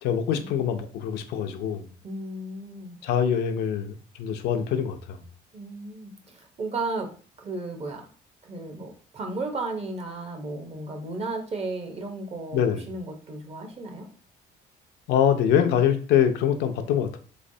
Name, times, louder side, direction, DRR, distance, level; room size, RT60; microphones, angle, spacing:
voice 1, 0.0-1.9 3.0-5.2 12.5-12.8 15.1-17.2, left 9 dB, 80° left, 0.5 m, -24 dB
voice 2, 2.0-3.0 5.5-7.1 7.4-8.1 8.4-14.1, right 2 dB, 40° right, 0.8 m, -34 dB
3.3 x 3.1 x 2.6 m
cardioid pair, 110°, 17 cm